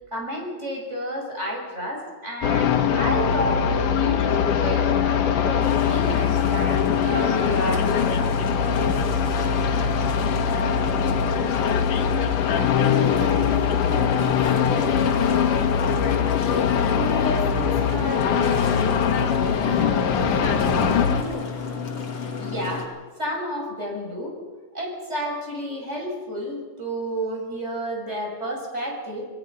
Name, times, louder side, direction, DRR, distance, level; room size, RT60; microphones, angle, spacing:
voice 1, 0.1-8.3 22.4-22.9 23.2-24.3 24.7-29.2, equal, 20° right, 0 dB, 6.4 m, -30 dB
sound 1, 2.4-21.2, left 7 dB, 85° left, 2.9 m, -22 dB
sound 2, 5.6-22.9, left 4 dB, 50° left, 3.2 m, -33 dB
voice 2, 13.0-14.7 16.9-18.8 19.6-21.5, equal, 40° right, 0 dB, 6.1 m, -34 dB
28.0 x 19.5 x 5.4 m, 1.3 s
omnidirectional pair, 3.5 m